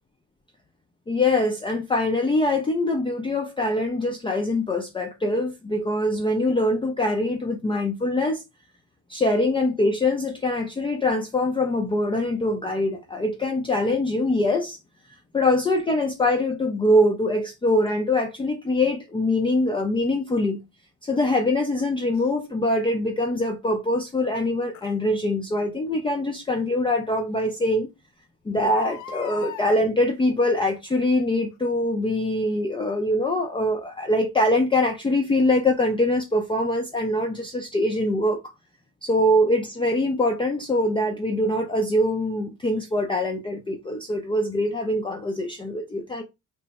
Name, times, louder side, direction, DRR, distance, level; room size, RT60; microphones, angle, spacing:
voice 1, 1.1-8.4 9.1-14.8 15.3-20.6 21.0-27.9 28.5-38.4 39.0-46.2, left 1 dB, 15° left, 0.5 m, -23 dB
Crying sobbing, 22.1-22.3 24.7-24.9 26.5-26.6 27.1-27.2 27.5-27.6 28.6-29.7 30.6-31.0 31.5-31.6, left 8 dB, 75° left, 0.6 m, -39 dB
3.2 x 2.0 x 4.0 m
cardioid pair, 90°, 30 cm